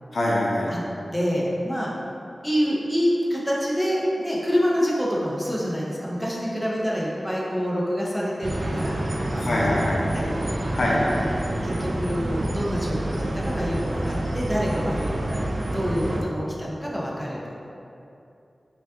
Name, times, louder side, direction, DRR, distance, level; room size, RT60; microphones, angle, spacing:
voice 1, 0.1-0.7 9.4-10.0 10.7-11.1, left 1 dB, 70° left, -5 dB, 0.6 m, -23 dB
voice 2, 1.1-1.9 2.4-9.8 10.1-11.0 11.6-17.6, equal, ahead, -6 dB, 0.6 m, -27 dB
sound 1, 8.4-16.2, right 1 dB, 50° right, 0.3 m, -28 dB
5.2 x 2.3 x 2.4 m, 2.7 s
wide cardioid pair, 95°, 0 cm